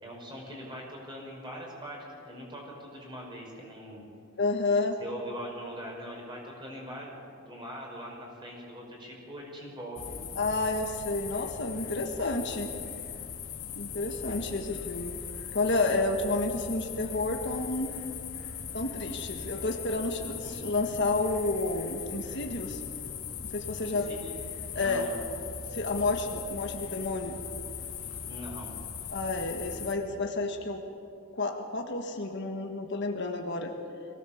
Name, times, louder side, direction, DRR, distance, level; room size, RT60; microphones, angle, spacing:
voice 1, 0.0-4.0 5.0-10.4 14.3-14.5 20.4-20.5 23.8-24.4 24.7-25.1 28.3-28.8, equal, 20° right, -2 dB, 5.1 m, -42 dB
voice 2, 4.4-5.0 10.3-12.7 13.7-15.1 15.5-17.9 18.7-22.8 23.4-24.1 24.7-25.1 25.7-27.4 29.1-30.8 31.3-33.7, left 2 dB, 55° left, 3 dB, 1.6 m, -30 dB
sound 1, 10.0-29.9, left 7 dB, 80° left, 2.0 m, -39 dB
23.0 x 17.5 x 7.2 m, 2.5 s
head